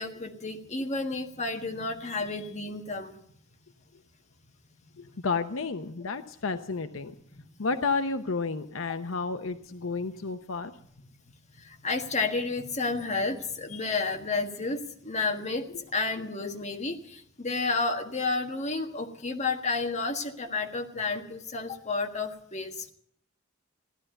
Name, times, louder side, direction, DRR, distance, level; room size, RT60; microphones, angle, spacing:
voice 1, 0.0-3.1 7.3-7.4 11.8-15.6 15.9-22.8, left 3 dB, 35° left, 3 dB, 1.6 m, -31 dB
voice 2, 5.0-7.1 7.6-10.7, left 4 dB, 75° left, 9 dB, 0.8 m, -31 dB
15.5 x 11.0 x 7.8 m, 0.67 s
head